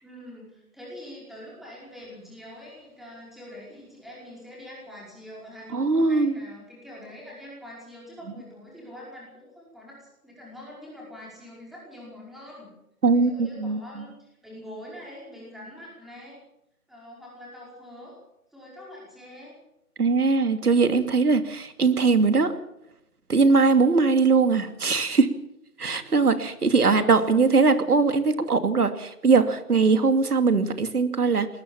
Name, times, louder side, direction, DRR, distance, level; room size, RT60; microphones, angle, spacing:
voice 1, 0.0-12.7 13.1-16.4 16.9-18.2 18.5-19.5 25.9-26.2 26.8-27.1, left 1 dB, ahead, -4 dB, 5.2 m, -44 dB
voice 2, 5.7-6.3 13.0-13.8 20.0-22.5 23.3-25.3 25.8-31.5, right 4 dB, 75° right, 10 dB, 2.7 m, -21 dB
20.0 x 19.0 x 7.3 m, 0.81 s
figure-of-eight pair, 155°, 45 cm